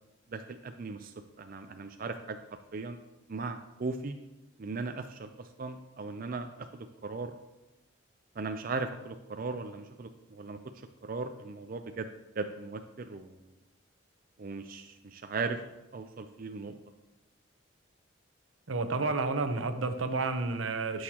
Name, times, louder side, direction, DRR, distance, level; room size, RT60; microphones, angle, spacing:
voice 1, 0.3-2.4 2.7-3.0 3.3-4.2 4.6-7.3 8.4-10.6 11.0-12.1 12.4-13.5 14.4-15.6 15.9-16.8, right 3 dB, 45° right, 7 dB, 0.4 m, -38 dB
voice 2, 18.7-21.0, right 3 dB, 85° right, 8 dB, 0.9 m, -30 dB
17.0 x 6.4 x 2.9 m, 0.99 s
head